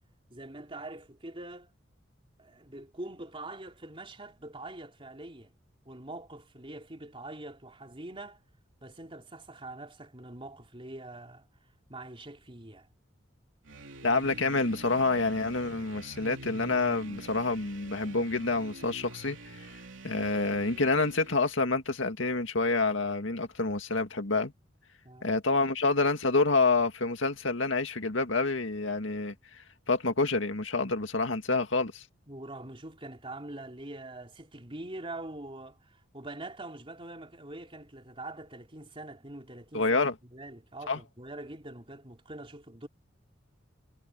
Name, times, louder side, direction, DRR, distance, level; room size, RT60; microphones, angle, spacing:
voice 1, 0.3-1.7 2.4-5.5 5.9-8.4 8.8-11.5 11.9-12.9 25.0-25.3 32.3-39.9 40.3-42.9, right 2 dB, 30° right, 3.5 m, -44 dB
sound 1, 13.7-21.5, right 2 dB, 75° right, 3.1 m, -47 dB
voice 2, 14.0-19.7 20.0-24.5 25.2-29.3 29.9-32.0 39.7-40.1 40.9-41.0, left 3 dB, 80° left, 2.1 m, -28 dB
head